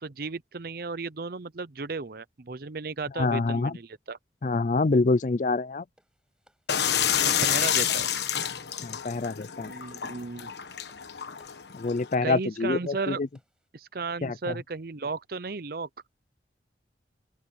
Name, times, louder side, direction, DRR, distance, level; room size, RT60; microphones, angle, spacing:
voice 1, 0.0-4.2 7.4-8.1 9.6-10.5 12.2-13.2 13.7-15.9, right 4 dB, 55° right, 0.7 m, -34 dB
voice 2, 3.2-3.8 4.4-5.8 8.8-9.7 11.7-13.3 14.2-14.5, left 3 dB, 45° left, 0.4 m, -26 dB
sound 1, 6.0-13.7, equal, 5° right, 6.0 m, -66 dB
sound 2, 6.7-12.1, left 9 dB, 70° left, 1.2 m, -28 dB
open air
head